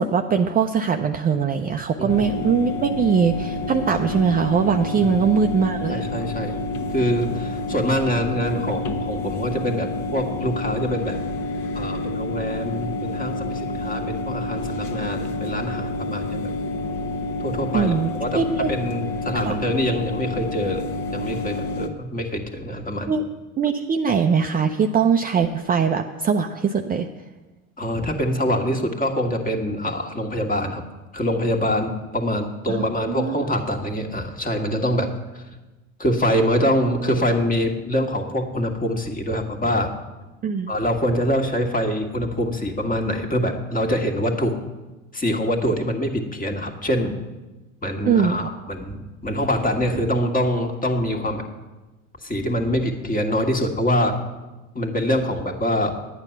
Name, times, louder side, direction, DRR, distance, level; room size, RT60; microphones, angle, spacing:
voice 1, 0.0-6.1 17.7-18.1 18.3-18.7 19.3-19.6 23.1-23.2 23.6-27.1 32.7-33.3 40.4-40.7 48.1-48.5, right 6 dB, 20° right, 5 dB, 0.5 m, -21 dB
sound 1, 2.1-21.9, left 2 dB, 45° left, 1.2 m, -29 dB
voice 2, 5.0-5.4 5.9-6.6 6.9-11.2 11.7-16.5 17.4-17.9 18.2-18.4 18.7-23.1 27.8-30.9 31.1-35.4 36.0-39.9 40.7-44.5 45.1-47.1 47.8-51.4 52.2-54.1 54.8-55.9, equal, 20° left, 4 dB, 1.6 m, -24 dB
10.0 x 8.9 x 5.8 m, 1.1 s
hypercardioid pair, 75°, 40 cm